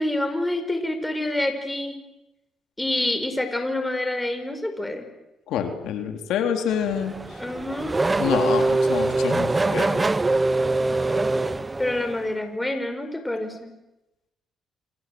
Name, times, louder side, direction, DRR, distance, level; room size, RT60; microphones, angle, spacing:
voice 1, 0.0-2.0 2.8-5.1 7.4-7.9 11.8-13.7, left 1 dB, 10° left, 7 dB, 5.2 m, -27 dB
voice 2, 5.5-7.1 8.2-10.0, left 8 dB, 85° left, 5 dB, 3.6 m, -27 dB
Race car auto racing / Accelerating revving vroom, 6.7-12.3, right 2 dB, 20° right, 1.0 m, -23 dB
27.5 x 27.0 x 7.9 m, 0.95 s
cardioid pair, 90°, 0 cm